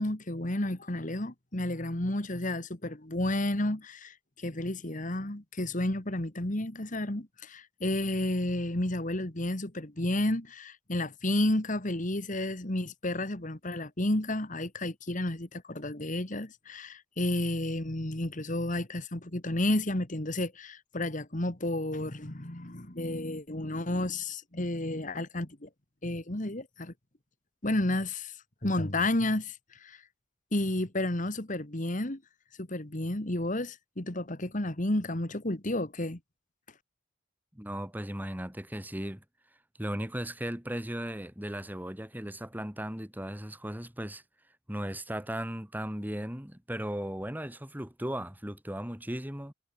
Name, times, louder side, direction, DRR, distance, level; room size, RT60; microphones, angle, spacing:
voice 1, 0.0-25.7 26.0-26.9 27.6-28.3 28.6-30.0 30.5-32.2 32.6-36.2, left 1 dB, 40° left, 2.0 m, -31 dB
voice 2, 37.5-39.2 39.8-44.2 44.7-49.5, equal, 10° right, 2.4 m, -36 dB
head